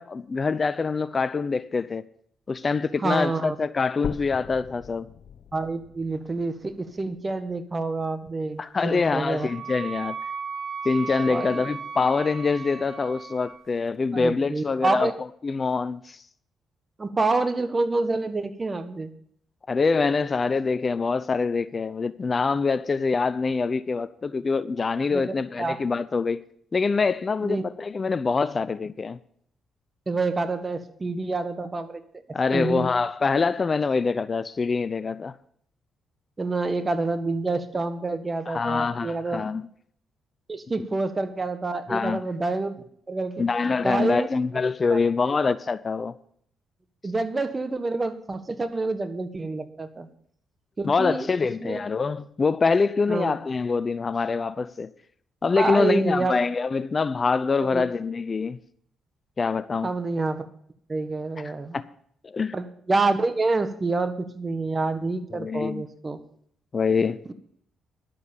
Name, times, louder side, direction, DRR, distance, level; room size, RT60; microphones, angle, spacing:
voice 1, 0.0-2.0 2.5-5.1 8.6-10.2 10.8-15.1 15.4-16.2 19.7-26.4 26.7-29.2 32.3-35.3 38.5-39.7 41.9-42.2 43.4-46.1 50.8-54.9 55.4-58.6 59.4-59.9 61.7-61.8 62.2-62.5 65.3-65.8 66.7-67.2, left 4 dB, 40° left, 0.5 m, -25 dB
voice 2, 3.0-3.5 5.5-9.5 11.3-11.6 14.1-15.1 17.0-19.1 25.1-25.8 27.4-27.6 30.1-32.0 32.5-32.9 36.4-39.4 40.5-42.8 43.1-44.3 44.9-45.0 45.2-45.4 47.0-50.1 50.8-51.3 51.6-51.8 53.1-53.3 55.6-56.3 57.7-57.8 59.8-60.5 60.9-61.8 62.5-66.2, right 3 dB, 30° right, 1.4 m, -27 dB
sound 1, 4.0-8.0 8.6-8.7 9.3-9.4 9.7-9.8 10.6-10.7, left 8 dB, 60° left, 0.9 m, -41 dB
Wind instrument woodwind instrument, 8.9-13.7, right 6 dB, 60° right, 1.1 m, -36 dB
11.5 x 7.7 x 7.0 m
supercardioid pair, 65°, 0 cm